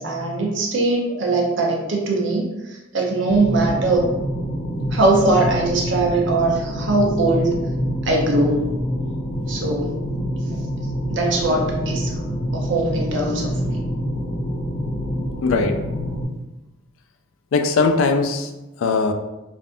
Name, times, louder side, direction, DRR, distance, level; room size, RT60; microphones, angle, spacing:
voice 1, 0.0-4.1 4.9-7.6 8.0-8.6 9.5-9.9 10.5-10.6 11.1-12.1 12.5-13.8, right 2 dB, 65° right, -1 dB, 0.7 m, -21 dB
sound 1, 3.3-16.2, equal, 25° left, 0.5 m, -26 dB
voice 2, 15.4-15.8 17.5-18.5 18.8-19.1, left 4 dB, 80° left, 6 dB, 0.4 m, -19 dB
3.3 x 2.5 x 2.5 m, 1.0 s
head